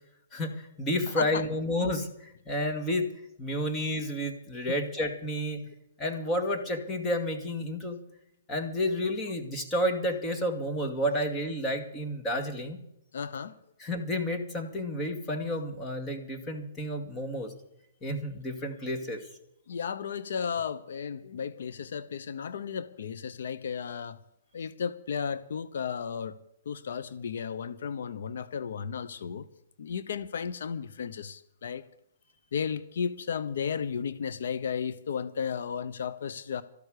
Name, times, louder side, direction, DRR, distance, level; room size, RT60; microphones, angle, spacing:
voice 1, 0.3-3.1 3.4-5.6 6.0-8.0 8.5-12.8 13.8-17.5 18.0-19.3, left 1 dB, 15° left, 4 dB, 2.3 m, -31 dB
voice 2, 13.1-13.5 19.7-24.2 24.5-26.4 26.7-29.5 29.8-31.8 32.5-36.6, left 7 dB, 70° left, 13 dB, 0.8 m, -34 dB
13.5 x 12.0 x 6.6 m, 0.78 s
hypercardioid pair, 140°, 0 cm